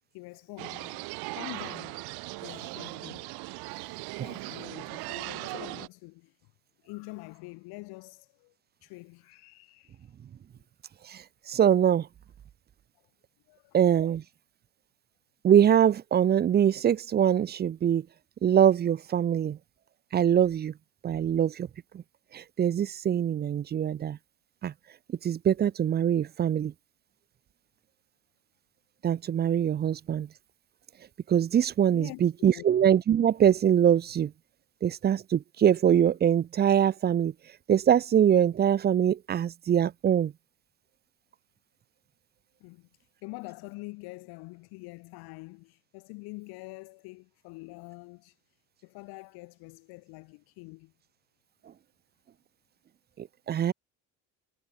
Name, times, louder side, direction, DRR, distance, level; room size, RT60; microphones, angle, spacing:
voice 1, 0.1-2.1 2.4-3.3 4.2-6.5 6.8-8.5 8.8-10.1 13.5-13.8 31.9-32.6 42.6-50.9, left 25 dB, 75° left, 5.7 m, -46 dB
sound 1, 0.6-5.9, right 25 dB, 75° right, 4.6 m, -38 dB
voice 2, 11.1-12.1 13.7-14.2 15.4-18.1 18.4-19.6 20.1-20.7 21.0-21.7 21.9-22.0 22.3-24.2 24.6-24.7 25.2-26.7 29.0-30.3 31.3-34.3 34.8-37.3 37.7-40.3 53.2-53.7, right 9 dB, 25° right, 0.5 m, -23 dB
supercardioid pair, 100°, 37 cm